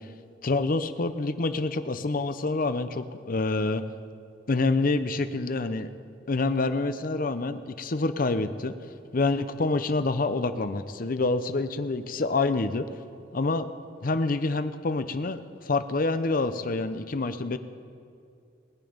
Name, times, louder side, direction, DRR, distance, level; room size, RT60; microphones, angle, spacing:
voice 1, 0.4-3.8 4.5-5.9 6.3-8.7 9.1-12.9 13.3-13.7 14.0-17.6, left 3 dB, 50° left, 11 dB, 0.7 m, -27 dB
20.5 x 9.2 x 5.2 m, 2.5 s
head